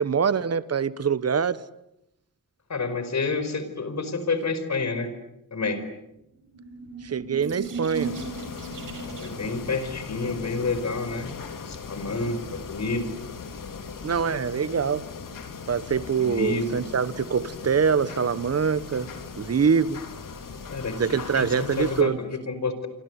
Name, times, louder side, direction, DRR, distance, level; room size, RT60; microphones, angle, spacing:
voice 1, 0.0-1.6 7.0-8.2 14.0-15.0 15.7-19.1 19.4-20.0 21.0-22.2, right 6 dB, 45° right, 1.3 m, -24 dB
voice 2, 2.7-5.1 5.5-5.8 9.2-11.3 11.7-13.1 16.2-16.7 20.7-21.0 21.3-22.9, left 3 dB, 50° left, 4.9 m, -29 dB
sound 1, 6.3-9.6, right 6 dB, 70° right, 4.8 m, -36 dB
sound 2, 7.9-22.0, left 5 dB, 65° left, 3.5 m, -39 dB
28.0 x 25.5 x 8.2 m
wide cardioid pair, 100°, 34 cm